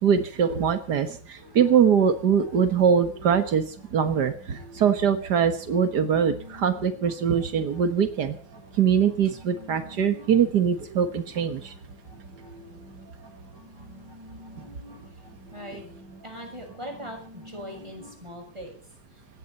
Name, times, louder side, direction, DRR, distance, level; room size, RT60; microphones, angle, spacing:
voice 1, 0.0-8.3 8.8-11.7, right 7 dB, 75° right, 9 dB, 0.9 m, -22 dB
sound 1, 1.4-18.1, right 1 dB, 30° right, 8.5 m, -49 dB
voice 2, 15.5-15.8 16.2-18.8, equal, 10° right, 3 dB, 6.0 m, -40 dB
19.0 x 17.0 x 4.2 m, 0.43 s
omnidirectional pair, 4.0 m